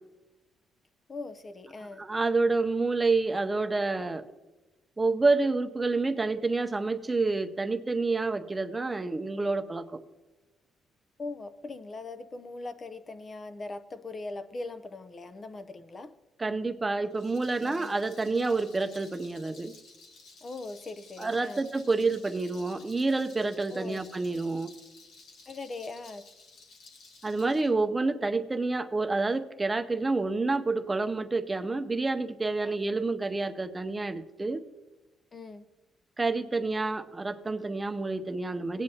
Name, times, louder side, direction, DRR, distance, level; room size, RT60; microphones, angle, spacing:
voice 1, 1.1-2.0 11.2-16.1 17.6-17.9 20.4-21.6 23.7-24.0 25.5-26.3 32.6-32.8 35.3-35.6, left 3 dB, 35° left, 11 dB, 0.6 m, -40 dB
voice 2, 2.0-4.2 5.0-10.0 16.4-19.7 21.2-24.7 27.2-34.6 36.2-38.8, right 3 dB, 20° right, 10 dB, 0.6 m, -28 dB
Rattle, 17.0-27.7, left 3 dB, 75° left, 2.0 m, -54 dB
17.0 x 9.7 x 2.8 m, 1.1 s
cardioid pair, 90°, 0 cm